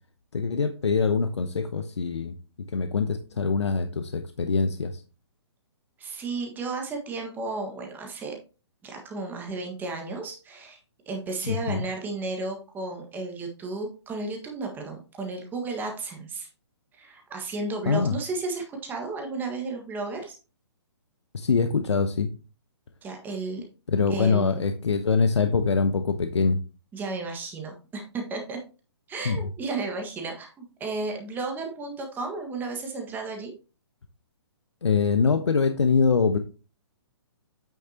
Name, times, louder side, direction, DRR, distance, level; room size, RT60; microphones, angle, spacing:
voice 1, 0.3-2.3 2.7-5.0 11.4-11.8 17.9-18.1 21.3-22.3 23.9-26.6 29.2-29.4 34.8-36.4, left 5 dB, 85° left, 8 dB, 0.8 m, -24 dB
voice 2, 6.0-8.3 8.8-10.8 11.1-16.5 16.9-20.4 23.0-23.6 24.1-24.7 26.9-28.6 29.1-33.5, right 3 dB, 15° right, 3 dB, 1.6 m, -33 dB
8.5 x 6.5 x 2.9 m, 0.33 s
hypercardioid pair, 145°, 14 cm